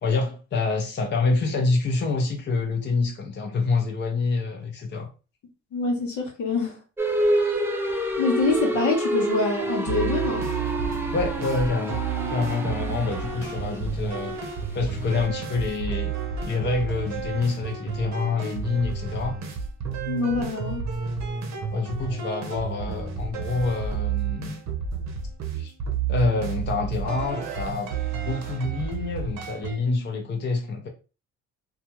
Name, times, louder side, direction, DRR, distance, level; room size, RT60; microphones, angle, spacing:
voice 1, 0.0-5.1 11.1-12.0 12.3-14.4 14.7-16.1 16.4-19.4 21.7-24.6 25.6-25.7 26.1-30.9, left 3 dB, 35° left, 0.6 m, -27 dB
voice 2, 5.7-6.8 8.2-10.5 20.0-20.8, left 3 dB, 75° left, 1.0 m, -25 dB
sound 1, 7.0-15.3, right 1 dB, 10° right, 0.5 m, -28 dB
sound 2, 9.9-29.8, right 6 dB, 65° right, 0.7 m, -31 dB
2.4 x 2.3 x 2.9 m
cardioid pair, 90°, 30 cm